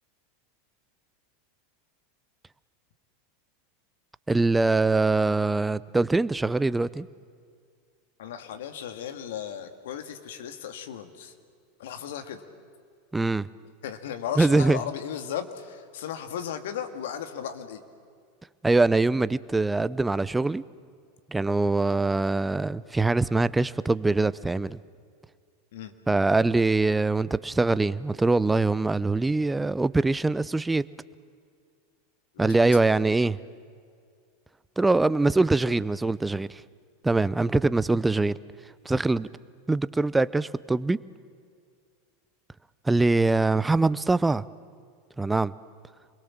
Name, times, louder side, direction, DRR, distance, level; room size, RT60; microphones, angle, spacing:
voice 1, 4.3-7.1 13.1-13.5 14.4-14.8 18.6-20.6 21.3-24.8 26.1-30.8 32.4-33.4 34.8-36.6 37.0-38.4 38.8-39.3 39.7-41.0 42.8-44.4 45.2-45.5, right 3 dB, 10° right, 17 dB, 0.7 m, -23 dB
voice 2, 8.2-11.3 11.8-12.4 13.8-17.8 25.7-25.9 32.3-32.8, left 9 dB, 70° left, 8 dB, 2.0 m, -36 dB
28.5 x 22.0 x 7.4 m, 2.2 s
hypercardioid pair, 90°, 0 cm